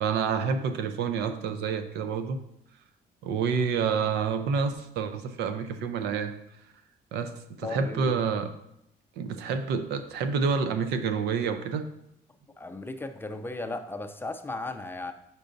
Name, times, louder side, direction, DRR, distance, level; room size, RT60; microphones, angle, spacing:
voice 1, 0.0-2.4 3.2-6.3 7.1-8.5 9.2-11.9, right 6 dB, 80° right, 9 dB, 0.6 m, -28 dB
voice 2, 7.6-8.2 12.6-15.1, left 2 dB, 15° left, 7 dB, 0.4 m, -36 dB
7.9 x 5.4 x 2.6 m, 0.80 s
cardioid pair, 110°, 17 cm